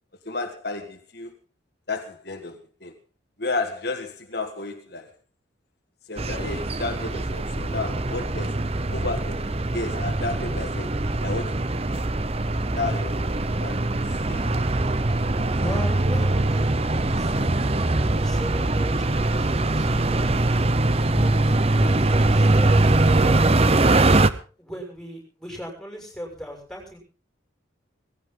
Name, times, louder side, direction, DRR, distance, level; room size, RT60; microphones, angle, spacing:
voice 1, 0.2-1.3 1.9-2.9 3.4-5.1 6.1-8.6 8.9-11.6 12.7-13.8 14.3-14.5 15.3-15.4, left 3 dB, 55° left, 4 dB, 1.7 m, -32 dB
sound 1, 6.2-24.3, right 2 dB, 30° right, 0.8 m, -22 dB
voice 2, 15.6-17.8 18.1-20.3 21.1-23.1 24.6-27.0, equal, 5° left, 1 dB, 6.5 m, -38 dB
19.0 x 16.5 x 3.9 m, 0.36 s
head